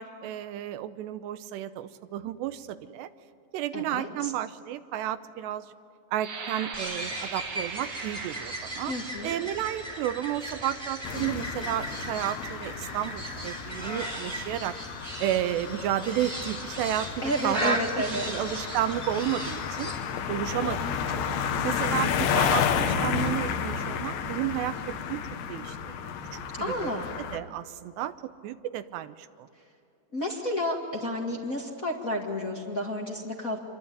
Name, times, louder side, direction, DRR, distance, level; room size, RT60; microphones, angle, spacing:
voice 1, 0.0-3.1 3.5-5.7 6.1-8.9 9.2-14.7 15.2-17.1 17.4-17.8 18.3-19.9 20.3-21.2 21.6-25.2 25.5-25.9 26.3-26.4 26.8-27.0 27.3-28.1 28.4-29.5, right 12 dB, 80° right, 12 dB, 2.7 m, -32 dB
voice 2, 3.7-4.3 8.9-9.4 17.2-18.3 20.6-21.0 26.6-27.1 30.1-33.6, left 1 dB, 45° left, -1 dB, 1.0 m, -31 dB
sound 1, 6.1-11.8 12.5-12.6 13.1-13.5, right 5 dB, 50° right, 3.4 m, -42 dB
sound 2, 6.7-20.0, right 1 dB, 15° right, 3.0 m, -37 dB
sound 3, 11.0-27.4, left 7 dB, 80° left, 3.7 m, -32 dB
26.5 x 23.5 x 9.4 m, 2.6 s
omnidirectional pair, 5.3 m